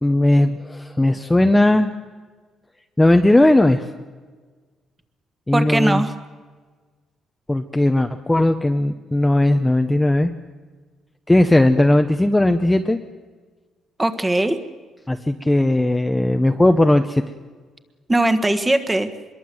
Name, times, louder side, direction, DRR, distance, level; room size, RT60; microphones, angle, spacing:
voice 1, 0.0-1.9 3.0-3.9 5.5-6.0 7.5-10.3 11.3-13.0 15.1-17.2, left 1 dB, 10° left, 6 dB, 0.8 m, -17 dB
voice 2, 5.5-6.1 14.0-14.6 18.1-19.1, right 1 dB, 10° right, 9 dB, 1.5 m, -19 dB
25.0 x 22.0 x 7.8 m, 1.4 s
cardioid pair, 140°, 0 cm